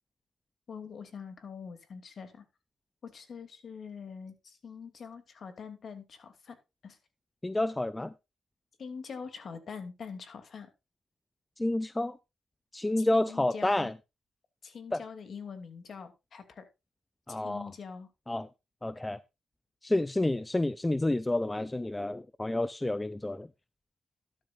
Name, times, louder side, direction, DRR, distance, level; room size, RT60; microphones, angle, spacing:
voice 1, 0.7-2.4 3.0-6.6 6.8-7.0 8.8-10.7 13.0-13.9 14.6-16.6 17.3-18.1, left 6 dB, 50° left, 2.7 m, -44 dB
voice 2, 7.4-8.1 11.6-12.2 12.7-13.9 14.9-15.0 17.3-17.7 18.3-18.5 18.8-19.2 19.8-23.5, left 1 dB, 15° left, 0.5 m, -29 dB
12.5 x 11.0 x 2.5 m
cardioid pair, 90°, 0 cm